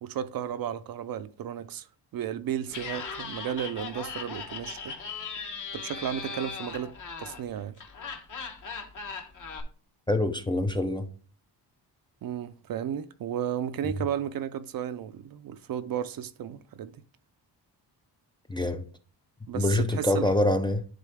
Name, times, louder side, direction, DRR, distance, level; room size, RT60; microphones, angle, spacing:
voice 1, 0.0-1.9 2.1-4.9 5.7-6.9 7.2-7.8 12.2-16.9 19.5-20.3, right 9 dB, 55° right, 0.5 m, -33 dB
Laughter, 2.7-9.6, left 5 dB, 45° left, 1.1 m, -38 dB
voice 2, 10.1-11.1 13.8-13.9 18.5-18.9 19.5-20.8, left 1 dB, 10° left, 0.4 m, -25 dB
10.5 x 3.7 x 3.6 m
cardioid pair, 130°, 43 cm